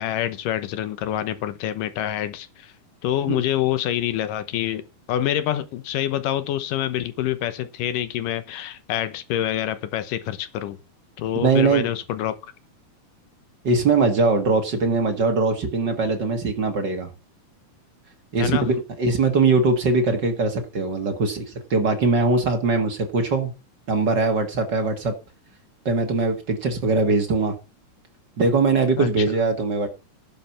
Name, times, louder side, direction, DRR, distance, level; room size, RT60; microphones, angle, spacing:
voice 1, 0.0-2.7 3.0-4.8 5.1-10.8 11.2-12.4 18.4-18.7 29.0-29.2, left 11 dB, 80° left, 2.5 m, -26 dB
voice 2, 11.4-11.9 13.6-17.1 18.3-21.4 21.7-23.5 23.9-25.1 25.9-27.5 28.4-29.9, right 3 dB, 40° right, 1.7 m, -21 dB
11.5 x 7.2 x 5.9 m
omnidirectional pair, 3.9 m